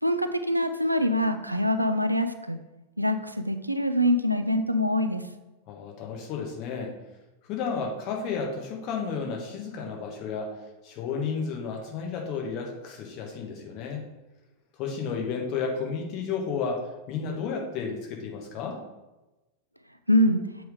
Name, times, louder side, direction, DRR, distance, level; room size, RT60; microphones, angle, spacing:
voice 1, 0.0-2.6 3.0-5.2 20.1-20.4, left 1 dB, 90° right, 8 dB, 0.4 m, -24 dB
voice 2, 5.7-6.9 7.5-10.5 10.8-14.0 14.8-18.8, left 5 dB, 40° left, 1 dB, 1.4 m, -32 dB
7.8 x 3.5 x 5.0 m, 1.1 s
figure-of-eight pair, 90°, 0 cm